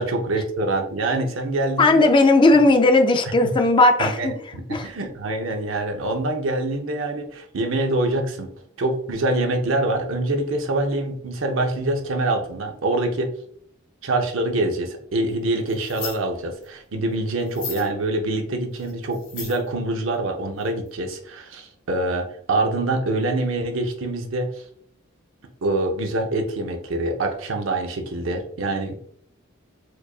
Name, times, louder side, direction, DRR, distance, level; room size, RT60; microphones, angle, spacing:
voice 1, 0.0-2.1 3.4-3.5 4.0-8.5 8.8-13.3 14.0-24.5 25.6-28.9, right 2 dB, 70° right, 4 dB, 0.6 m, -25 dB
voice 2, 1.8-4.3 4.7-4.9, left 2 dB, 25° left, 6 dB, 0.4 m, -16 dB
sound 1, 15.7-16.2 16.6-16.7 17.4-17.9 18.8-19.7 20.6-20.7 20.9-21.0, left 6 dB, 45° left, 1.3 m, -35 dB
4.6 x 2.5 x 2.3 m, 0.63 s
head